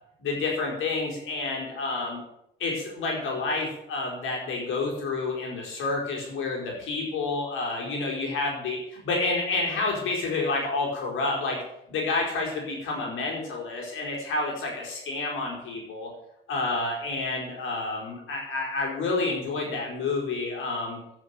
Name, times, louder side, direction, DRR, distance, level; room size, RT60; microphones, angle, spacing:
voice 1, 0.2-2.2 2.6-11.6 11.9-16.1 16.5-21.0, left 3 dB, 80° left, -1 dB, 4.8 m, -29 dB
12.0 x 8.6 x 9.0 m, 0.77 s
cardioid pair, 90°, 20 cm